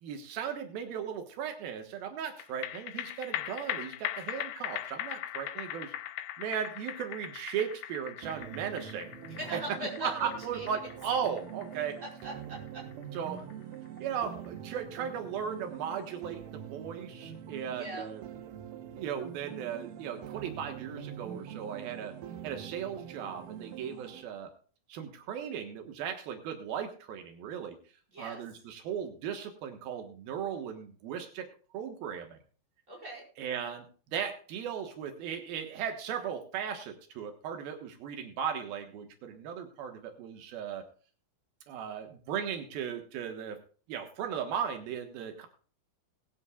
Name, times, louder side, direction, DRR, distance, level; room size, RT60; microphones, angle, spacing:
voice 1, 0.0-5.9 6.4-9.1 9.5-9.6 10.0-12.0 13.1-13.5 14.0-18.2 18.9-22.2 22.4-24.5 24.9-27.8 28.2-31.5 31.7-32.4 33.4-40.8 41.7-43.6 43.9-45.5, right 8 dB, 85° right, 5 dB, 3.2 m, -37 dB
sound 1, 2.4-15.1 15.4-15.5, left 13 dB, 85° left, 2.5 m, -40 dB
sound 2, 8.2-24.2, right 9 dB, 70° right, 2.5 m, -45 dB
voice 2, 9.3-10.3 10.5-10.7 12.0-12.8 17.8-18.0 28.1-28.4 32.9-33.2, right 1 dB, 20° right, -3 dB, 5.7 m, -40 dB
20.0 x 10.5 x 2.4 m, 0.40 s
omnidirectional pair, 4.1 m